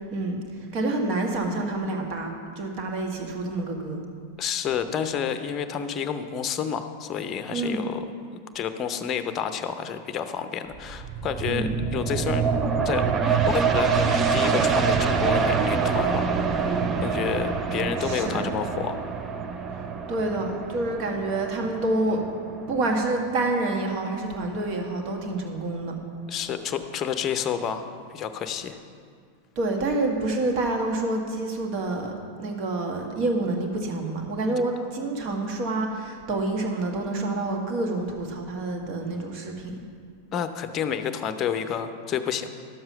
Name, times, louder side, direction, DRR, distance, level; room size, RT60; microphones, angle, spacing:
voice 1, 0.1-4.0 7.5-7.8 11.5-11.7 18.0-18.5 20.1-22.2 22.7-25.9 29.5-32.1 32.4-39.7, right 2 dB, 40° right, 2 dB, 1.6 m, -28 dB
voice 2, 4.4-8.0 8.5-12.4 12.8-16.3 16.6-19.0 26.3-28.8 40.3-42.5, left 8 dB, 30° left, 9 dB, 0.7 m, -30 dB
sound 1, 10.7-24.0 24.4-24.5, right 5 dB, 25° right, 0.7 m, -26 dB
12.0 x 7.6 x 5.7 m, 2.2 s
figure-of-eight pair, 90°, 0 cm